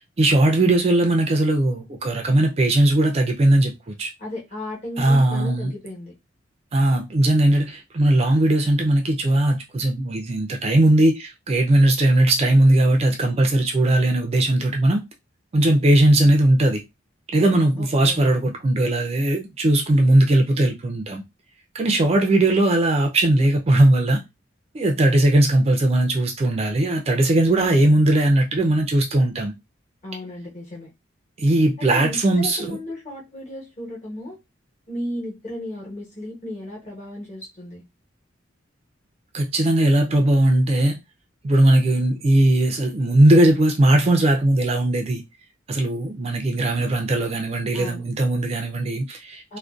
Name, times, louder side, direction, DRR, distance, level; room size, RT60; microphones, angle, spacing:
voice 1, 0.2-4.1 5.0-5.7 6.7-15.0 15.5-16.8 17.3-21.2 21.7-24.2 24.7-29.5 31.4-32.8 39.3-41.0 41.4-45.2 45.7-49.6, right 1 dB, 30° right, 0.3 m, -19 dB
voice 2, 4.2-6.1 17.8-18.2 30.0-30.9 31.8-34.4 34.9-37.8 47.7-48.0 49.5-49.6, left 1 dB, 35° left, 1.0 m, -34 dB
2.5 x 2.1 x 2.3 m
head